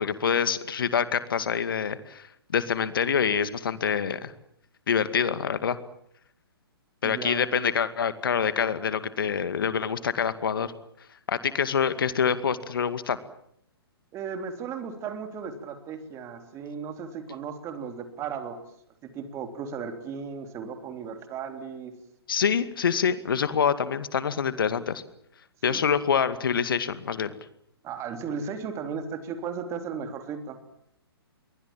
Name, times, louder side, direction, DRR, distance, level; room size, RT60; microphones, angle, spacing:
voice 1, 0.0-4.3 4.9-5.8 7.0-10.7 11.3-13.2 22.3-25.0 25.6-27.4, left 7 dB, 60° left, 12 dB, 2.3 m, -26 dB
voice 2, 7.0-7.4 14.1-18.6 19.0-22.0 25.7-25.9 27.8-30.6, right 6 dB, 20° right, 7 dB, 3.6 m, -35 dB
29.0 x 23.0 x 7.6 m, 0.73 s
figure-of-eight pair, 125°, 13 cm